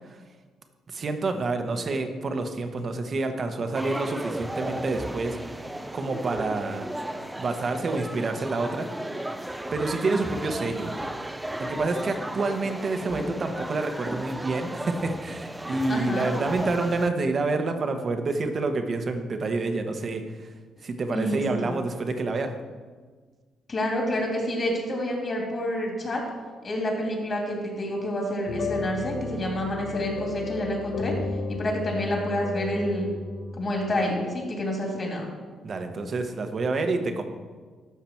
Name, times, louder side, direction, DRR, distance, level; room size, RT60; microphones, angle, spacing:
voice 1, 0.9-5.6 5.9-6.9 7.4-8.9 9.7-10.9 11.6-20.5 20.8-22.5 35.6-37.2, right 3 dB, 45° right, 6 dB, 1.1 m, -28 dB
sound 1, 3.7-17.1, right 1 dB, 10° right, 0.5 m, -34 dB
voice 2, 15.9-16.3 21.1-21.7 23.7-26.2 26.6-31.1 31.5-33.2 33.6-35.3, left 1 dB, 40° left, 0 dB, 2.9 m, -28 dB
sound 2, 28.5-33.6, left 3 dB, 70° left, 1.1 m, -33 dB
12.5 x 5.7 x 4.5 m, 1.5 s
cardioid pair, 90°, 0 cm